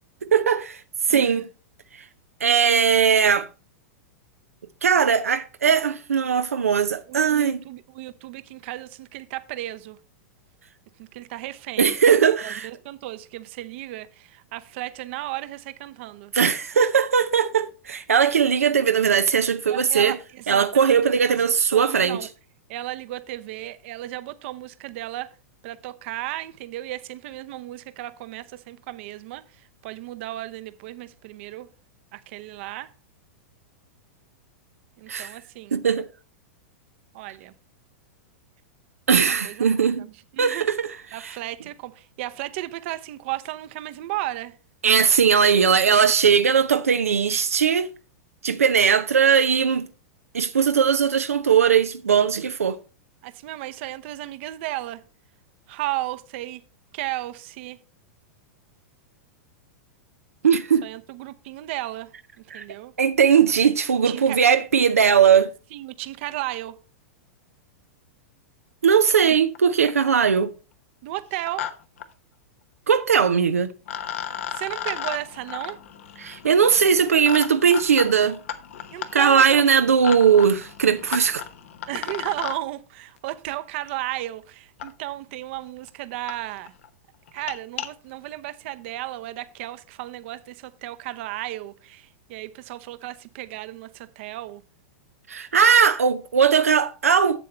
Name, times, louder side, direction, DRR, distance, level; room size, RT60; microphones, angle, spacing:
voice 1, 0.2-0.8 1.1-1.5 2.4-3.5 4.8-7.6 11.8-12.7 16.3-20.2 20.5-22.2 35.1-35.3 35.7-36.1 39.1-40.1 40.4-41.4 44.8-47.9 48.4-49.9 50.3-52.8 60.4-60.8 62.5-62.6 63.0-65.5 68.8-70.5 72.9-73.7 76.2-78.4 79.1-81.4 95.3-97.4, right 7 dB, 85° right, 0.6 m, -19 dB
voice 2, 1.1-1.5 7.1-10.0 11.0-12.0 12.4-16.3 19.7-22.3 22.7-25.3 25.6-31.7 32.1-32.9 35.0-35.8 37.1-37.5 39.1-39.6 40.0-40.7 41.1-44.6 53.2-55.0 55.7-56.6 56.9-57.8 60.8-62.1 62.5-62.9 64.0-64.6 65.7-66.8 71.0-71.7 74.5-75.8 78.9-79.4 81.9-86.7 87.3-94.6, right 16 dB, 55° right, 0.8 m, -34 dB
sound 1, 69.5-69.6 69.9-70.3 71.2-71.7 72.0-72.1 73.4-73.5 73.9-82.6 83.9-84.0 84.8-84.9 85.6-85.7 85.9-86.0 86.3-86.4 86.7-86.9 87.3-87.9, left 9 dB, 65° left, 1.1 m, -35 dB
7.8 x 7.6 x 4.3 m
hypercardioid pair, 105°, 8 cm